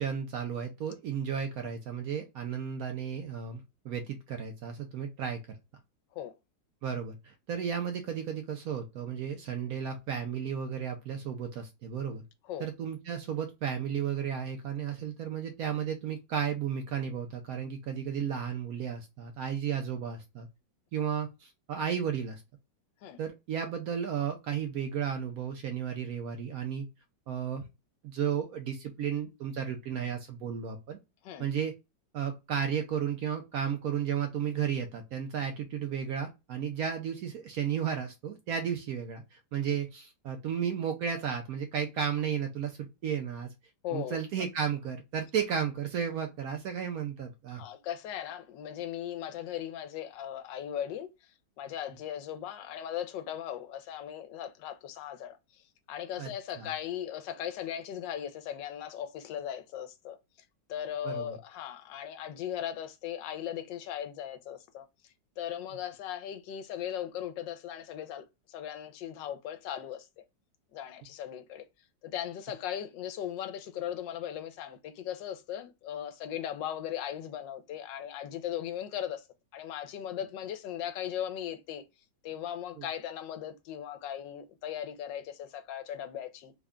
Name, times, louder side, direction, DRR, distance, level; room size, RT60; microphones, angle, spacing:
voice 1, 0.0-5.4 6.8-12.2 12.6-20.5 20.9-22.4 23.2-26.9 27.3-27.6 28.0-31.0 31.4-31.7 32.1-43.5 43.9-47.6 56.2-56.3 56.6-56.7 61.0-61.4 82.8-82.9, right 8 dB, 70° right, 0.9 m, -33 dB
voice 2, 43.8-44.2 47.5-60.2 60.7-64.9 65.4-70.2 70.7-71.7 72.0-79.3 79.5-81.8 82.2-86.5, left 10 dB, 85° left, 1.3 m, -38 dB
3.5 x 2.1 x 3.5 m
omnidirectional pair, 1.9 m